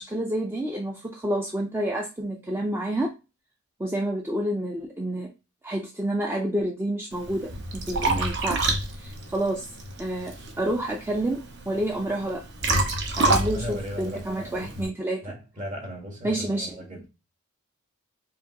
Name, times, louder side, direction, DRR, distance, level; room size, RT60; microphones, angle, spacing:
voice 1, 0.0-3.1 3.8-5.3 5.6-9.7 10.0-12.4 13.1-15.3 16.2-16.7, right 1 dB, 10° right, 0.4 m, -29 dB
Liquid, 7.1-14.9, right 2 dB, 55° right, 0.9 m, -28 dB
voice 2, 13.4-14.8 15.2-17.0, equal, 35° right, 1.6 m, -37 dB
4.9 x 2.9 x 2.7 m
head